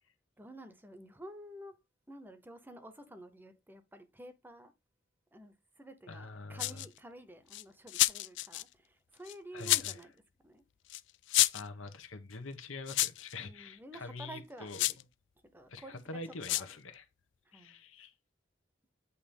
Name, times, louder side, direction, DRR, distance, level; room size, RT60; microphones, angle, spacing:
voice 1, 0.4-1.8 2.1-4.7 5.3-10.1 10.4-10.6 13.4-15.0 15.4-16.0 16.3-16.8 17.4-17.8, right 1 dB, 10° right, 0.8 m, -51 dB
voice 2, 6.1-6.8 9.5-10.0 11.5-14.8 15.7-17.0 17.5-18.1, left 3 dB, 90° left, 1.1 m, -45 dB
sound 1, 6.6-7.0 7.5-8.6 9.3-10.0 10.9-11.0 11.3-11.7 12.9-13.3 14.7-15.0 16.4-16.7, left 16 dB, 65° left, 0.4 m, -29 dB
8.3 x 2.9 x 5.2 m
head